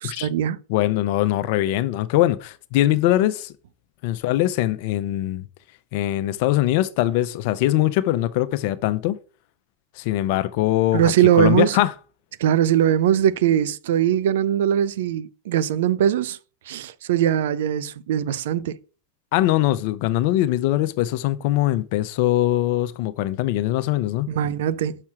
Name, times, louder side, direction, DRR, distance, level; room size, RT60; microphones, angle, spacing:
voice 1, 0.0-0.6 10.9-11.8 12.4-16.4 16.7-18.8 24.3-25.0, right 10 dB, 70° right, 0.5 m, -21 dB
voice 2, 0.7-3.5 4.0-5.4 5.9-9.2 10.0-11.9 19.3-24.3, left 14 dB, 60° left, 0.6 m, -22 dB
5.8 x 4.4 x 6.0 m
hypercardioid pair, 105°, 0 cm